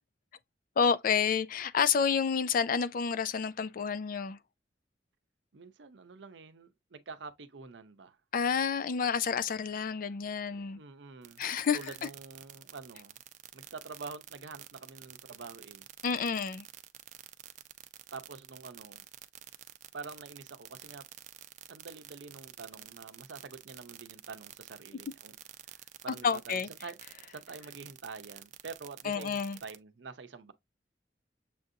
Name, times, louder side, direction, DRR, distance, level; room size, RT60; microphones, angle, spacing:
voice 1, 0.8-4.4 8.3-10.8 11.4-11.8 16.0-16.7 26.2-26.7 29.0-29.6, left 6 dB, 50° left, 0.4 m, -29 dB
voice 2, 5.5-8.2 10.7-11.4 11.7-13.2 13.5-15.9 18.1-19.1 19.9-21.0 21.7-25.3 25.7-27.0 27.3-30.5, right 4 dB, 80° right, 0.7 m, -46 dB
sound 1, 11.2-29.8, right 12 dB, 45° right, 0.4 m, -49 dB
7.0 x 2.6 x 2.7 m
head